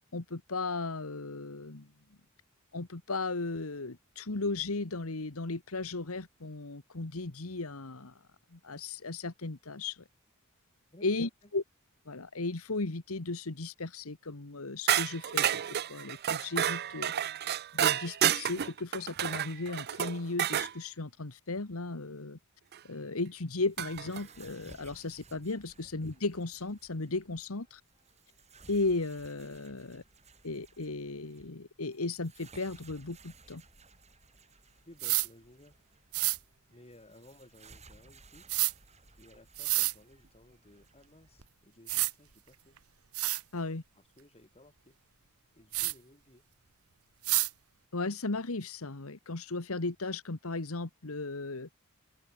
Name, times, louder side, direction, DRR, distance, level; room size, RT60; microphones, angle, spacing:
voice 1, 0.1-1.9 2.7-8.1 8.5-10.0 11.0-11.6 12.1-17.1 17.7-22.4 22.8-27.8 28.7-30.0 30.4-33.6 43.5-43.8 47.9-51.7, left 3 dB, 75° left, 1.5 m, -36 dB
voice 2, 10.9-11.5 34.8-35.8 36.7-38.4 39.2-42.8 44.2-45.0 45.5-46.4, left 1 dB, 30° left, 5.8 m, -57 dB
sound 1, 14.9-20.7 22.7-22.8 23.8-24.2, right 10 dB, 50° right, 0.5 m, -30 dB
sound 2, 23.4-41.5, right 3 dB, 30° right, 5.8 m, -58 dB
sound 3, 35.0-35.3 36.1-36.4 38.5-38.7 39.6-39.9 41.4-41.5 41.9-42.1 42.8-42.9 43.1-43.4 45.7-45.9 47.2-47.5, right 19 dB, 85° right, 1.1 m, -28 dB
open air
head